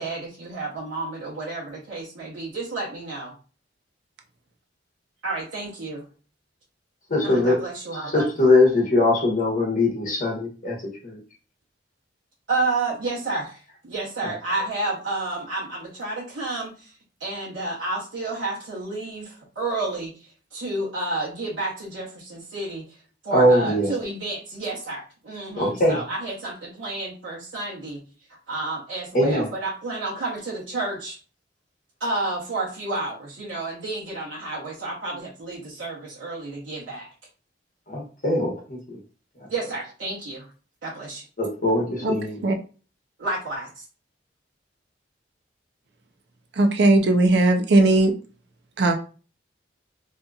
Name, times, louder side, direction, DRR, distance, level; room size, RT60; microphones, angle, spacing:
voice 1, 0.0-3.3 5.2-6.1 7.2-8.3 12.5-16.9 17.2-28.0 28.5-31.2 32.0-37.1 39.5-40.5 40.8-41.3 43.2-43.8, right 2 dB, 90° right, -8 dB, 0.9 m, -30 dB
voice 2, 7.1-7.6 8.1-10.8 11.0-11.2 14.2-14.3 23.3-23.9 25.6-26.0 29.1-29.5 37.9-39.0 39.4-39.5 41.4-42.4, left 1 dB, 45° left, -2 dB, 0.9 m, -21 dB
voice 3, 46.6-48.1 48.8-48.9, right 2 dB, 60° right, 5 dB, 0.5 m, -18 dB
2.8 x 2.5 x 2.3 m, 0.37 s
head